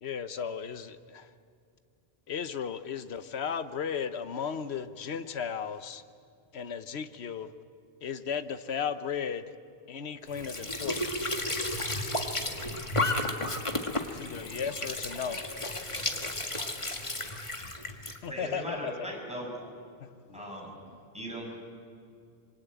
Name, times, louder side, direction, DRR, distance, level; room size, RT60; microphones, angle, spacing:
voice 1, 0.0-1.3 2.3-6.0 6.5-7.5 8.0-9.4 9.9-11.0 14.1-15.4 18.2-18.9 20.0-20.4, left 7 dB, 90° left, 11 dB, 1.2 m, -35 dB
Squeak / Sink (filling or washing) / Trickle dribble, 10.3-18.2, left 1 dB, 30° left, 1.8 m, -33 dB
voice 2, 14.3-14.6 15.0-17.3 17.9-18.0 20.2-20.4 20.6-21.0, equal, 60° right, -4 dB, 5.6 m, -50 dB
voice 3, 18.3-19.5 20.3-20.7 21.1-21.6, equal, 5° right, -2 dB, 7.4 m, -38 dB
26.5 x 24.0 x 9.0 m, 2.3 s
omnidirectional pair, 1.1 m